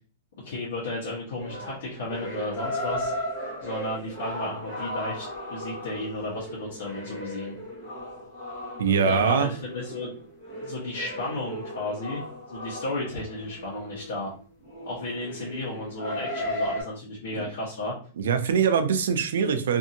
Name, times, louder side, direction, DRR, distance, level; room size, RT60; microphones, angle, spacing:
voice 1, 0.4-3.1 3.6-7.5 9.0-10.1 10.6-12.2 12.5-14.3 14.8-17.9, left 2 dB, 85° left, -6 dB, 1.0 m, -33 dB
sound 1, 1.4-16.8, equal, 20° left, 0.9 m, -36 dB
voice 2, 8.8-9.5 17.3-17.4 18.2-19.8, right 6 dB, 80° right, 8 dB, 0.4 m, -23 dB
2.6 x 2.5 x 2.7 m, 0.43 s
supercardioid pair, 175°, 0 cm